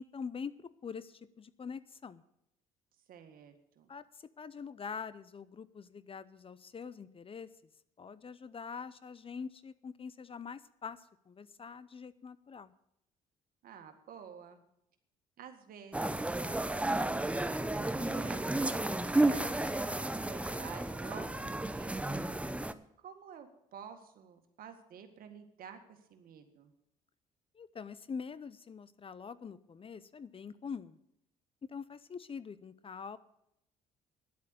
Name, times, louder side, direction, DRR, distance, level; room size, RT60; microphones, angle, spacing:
voice 1, 0.0-2.2 3.9-7.5 8.0-12.7 27.5-31.0 31.6-33.2, left 6 dB, 35° left, 17 dB, 0.7 m, -44 dB
voice 2, 3.1-3.9 13.6-14.6 15.4-17.4 17.8-22.2 23.0-26.7, right 7 dB, 65° right, 7 dB, 1.9 m, -51 dB
sound 1, 15.9-22.7, right 2 dB, 5° right, 0.7 m, -32 dB
10.5 x 8.4 x 8.4 m, 0.79 s
hypercardioid pair, 60°, 16 cm